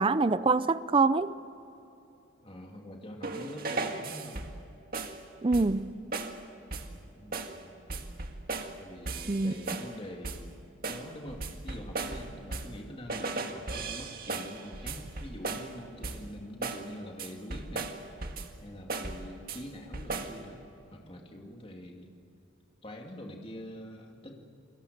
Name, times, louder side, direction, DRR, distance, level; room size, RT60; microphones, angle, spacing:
voice 1, 0.0-1.3 5.4-5.9 9.3-9.5, right 3 dB, 25° right, 0.5 m, -25 dB
voice 2, 2.4-4.5 6.9-7.7 8.8-10.6 10.9-17.9 18.6-20.6 20.9-22.1 22.8-24.3, equal, 30° left, 2.5 m, -45 dB
sound 1, 3.2-4.6 4.9-5.2 5.5-5.8 6.1-6.4 6.7-7.0 7.3-7.6 7.9-8.8 9.1-9.9 10.2-10.5 10.8-12.8 13.1-15.7 16.0-16.3 16.6-16.9 17.2-18.6 18.9-19.6 19.9-20.4, right 3 dB, 50° right, 1.8 m, -37 dB
30.0 x 22.0 x 6.7 m
head